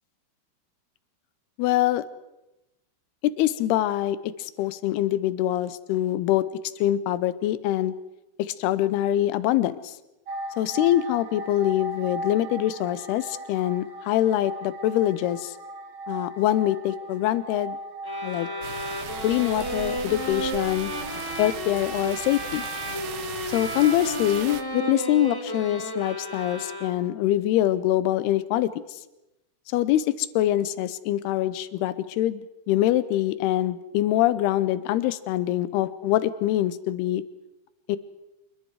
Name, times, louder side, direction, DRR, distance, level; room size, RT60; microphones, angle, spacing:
voice 1, 1.6-2.0 3.2-6.5 6.8-7.9 8.4-9.9 10.6-15.5 16.1-17.8 18.2-18.5 19.2-20.9 21.4-22.7 23.5-29.0 29.7-37.2 37.9-38.0, left 13 dB, 75° left, 15 dB, 2.8 m, -24 dB
sound 1, 10.3-22.7 23.1-23.2, right 1 dB, 85° right, 1.2 m, -39 dB
sound 2, 18.0-27.2, equal, 20° left, 0.5 m, -33 dB
sound 3, 18.6-24.6, right 10 dB, 70° right, 2.5 m, -38 dB
27.5 x 22.0 x 4.9 m, 0.96 s
omnidirectional pair, 4.8 m